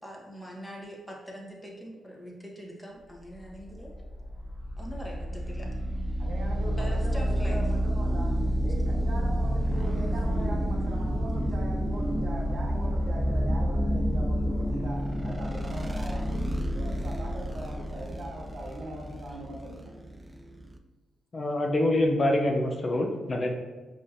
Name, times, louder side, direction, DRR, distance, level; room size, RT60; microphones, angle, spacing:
voice 1, 0.0-3.9 4.8-6.0 6.7-7.7 19.3-19.4, equal, 10° left, -2 dB, 1.1 m, -43 dB
sound 1, 3.4-20.8, equal, 15° right, 0.4 m, -29 dB
voice 2, 6.2-19.9, right 1 dB, 60° right, -1 dB, 0.9 m, -41 dB
voice 3, 21.3-23.5, left 1 dB, 40° left, 2 dB, 0.5 m, -25 dB
4.7 x 2.7 x 2.5 m, 1.3 s
supercardioid pair, 55°, 0 cm